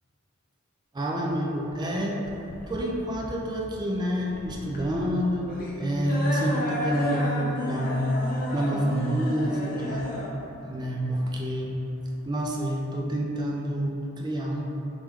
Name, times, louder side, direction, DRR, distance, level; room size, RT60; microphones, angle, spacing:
voice 1, 0.9-5.5 5.8-8.2 8.5-10.1 10.6-11.8 12.3-14.6, equal, 20° right, -2 dB, 0.3 m, -28 dB
sound 1, 2.2-12.3, left 1 dB, 40° left, 0.5 m, -33 dB
3.2 x 3.0 x 3.5 m, 2.8 s
head